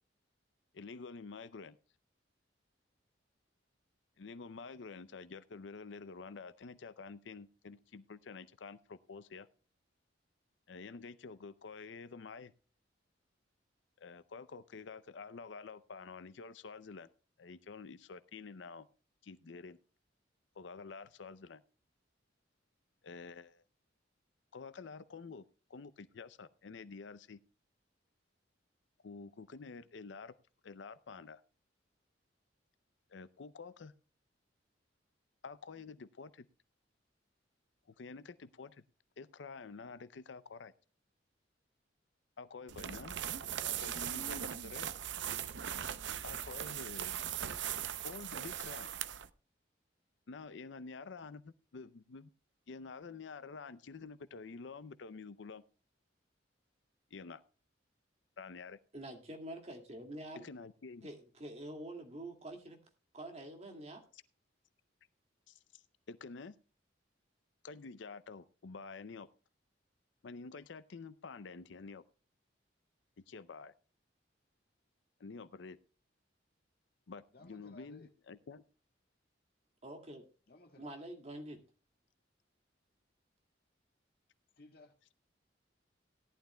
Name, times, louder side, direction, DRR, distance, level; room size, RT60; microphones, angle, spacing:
voice 1, 0.7-1.8 4.2-9.5 10.7-12.5 14.0-17.1 17.4-18.9 19.2-19.8 20.6-21.6 23.0-23.6 24.5-25.4 25.7-27.4 29.0-30.3 30.6-31.4 33.1-33.9 35.4-36.5 37.9-38.8 39.2-40.7 42.4-43.2 43.6-44.9 46.2-47.2 48.0-48.9 50.3-52.3 52.7-55.6 57.1-57.4 58.4-58.8 60.4-61.1 65.5-66.6 67.6-69.3 70.2-72.0 73.3-73.7 75.2-75.8 77.1-78.6, left 4 dB, 75° left, 0.5 m, -49 dB
sound 1, 42.7-49.3, right 9 dB, 70° right, 0.6 m, -39 dB
voice 2, 58.9-60.5 61.0-62.8 63.1-64.0 79.8-80.2 80.8-81.6, right 1 dB, 35° right, 2.2 m, -46 dB
voice 3, 77.3-78.1 80.5-80.9 84.6-84.9, left 2 dB, 55° left, 2.1 m, -58 dB
17.5 x 11.5 x 2.2 m
head